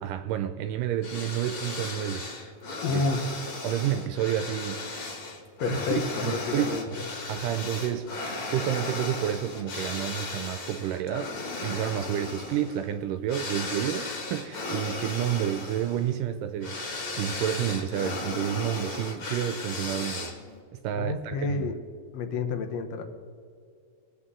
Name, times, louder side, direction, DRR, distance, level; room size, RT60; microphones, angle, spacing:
voice 1, 0.0-2.3 2.9-3.0 3.6-5.2 5.7-7.0 7.3-8.2 8.5-11.3 11.6-16.8 17.1-20.3 20.7-21.7, right 10 dB, 80° right, 2.0 m, -30 dB
sound 1, 1.0-20.6, left 3 dB, 45° left, 2.0 m, -36 dB
voice 2, 2.8-3.2 5.6-6.8 20.9-21.8 22.1-23.0, left 4 dB, 65° left, 1.7 m, -29 dB
20.5 x 8.3 x 3.7 m
omnidirectional pair, 4.0 m